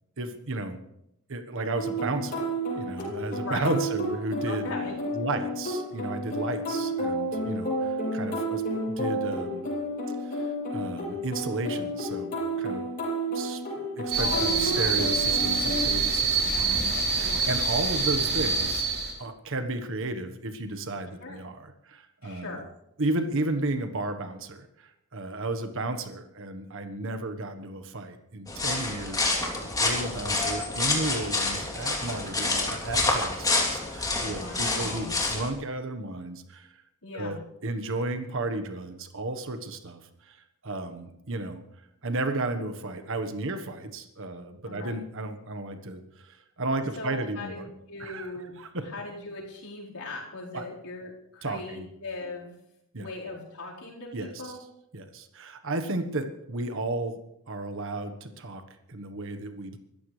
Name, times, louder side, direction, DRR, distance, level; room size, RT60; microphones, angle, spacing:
voice 1, 0.2-0.8 1.3-4.7 5.1-9.7 10.2-12.9 13.3-13.6 14.0-18.8 19.2-22.6 23.0-36.7 37.1-40.4 40.6-41.6 42.0-47.7 48.0-48.3 48.6-48.8 50.5-50.6 51.4-51.9 52.9-53.1 54.1-54.5 54.9-57.2 57.5-58.6 58.9-59.8, right 2 dB, 65° right, 8 dB, 1.4 m, -33 dB
sound 1, 1.7-15.8, right 1 dB, 45° left, 7.6 m, -31 dB
voice 2, 4.4-5.0 14.2-15.0 16.2-16.8 17.2-17.5 21.2-21.4 22.2-22.7 34.2-35.1 37.0-37.4 44.6-45.0 47.0-48.5 48.8-52.6 53.0-54.1 54.4-54.6, left 2 dB, 85° left, -4 dB, 4.6 m, -39 dB
sound 2, 14.1-19.1, right 4 dB, 50° right, 3.7 m, -26 dB
sound 3, 28.5-35.5, left 2 dB, 15° left, 3.1 m, -28 dB
25.0 x 14.0 x 3.4 m, 0.80 s
head